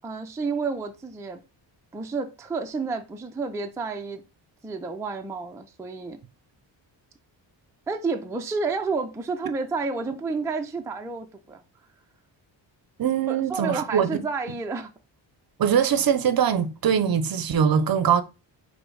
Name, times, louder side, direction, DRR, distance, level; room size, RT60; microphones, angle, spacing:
voice 1, 0.0-1.4 1.9-4.2 4.6-6.2 7.9-11.6 13.3-14.9, right 4 dB, 5° right, 0.4 m, -30 dB
voice 2, 13.0-14.2 15.6-18.2, right 8 dB, 50° right, 0.6 m, -22 dB
5.0 x 2.1 x 4.6 m
cardioid pair, 115°, 47 cm